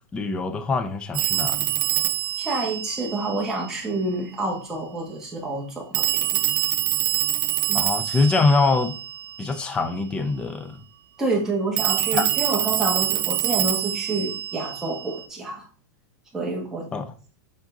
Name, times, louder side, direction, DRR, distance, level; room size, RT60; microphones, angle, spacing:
voice 1, 0.1-1.8 7.7-8.9 9.4-10.8 12.1-12.2 16.9-17.1, left 3 dB, 10° left, 0.4 m, -24 dB
Telephone, 1.1-3.8 5.9-9.6 11.8-15.2, right 15 dB, 35° right, 0.5 m, -25 dB
voice 2, 2.4-6.1 6.3-6.4 7.7-7.8 11.2-15.7 16.3-16.9, right 2 dB, 5° right, 1.6 m, -28 dB
7.4 x 3.9 x 3.8 m
supercardioid pair, 175°, 10 cm